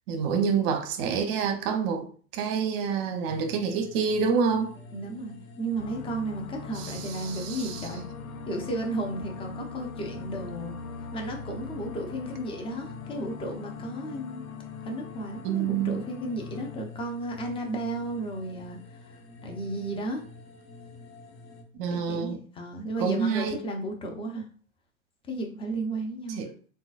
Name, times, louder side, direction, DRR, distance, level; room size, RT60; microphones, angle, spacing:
voice 1, 0.1-2.1 2.3-4.7 6.8-7.9 15.4-16.0 21.8-22.4 23.0-23.6 26.4-26.5, right 6 dB, 45° right, 0.7 m, -27 dB
sound 1, 3.2-21.6, left 3 dB, 50° left, 1.1 m, -47 dB
voice 2, 4.9-8.0 8.5-10.7 11.1-14.4 14.8-20.2 21.9-24.4 25.3-26.4, right 1 dB, 15° left, 0.6 m, -34 dB
sound 2, 5.8-16.9, left 4 dB, 80° left, 0.5 m, -42 dB
3.7 x 2.5 x 2.4 m
hypercardioid pair, 105°, 40 cm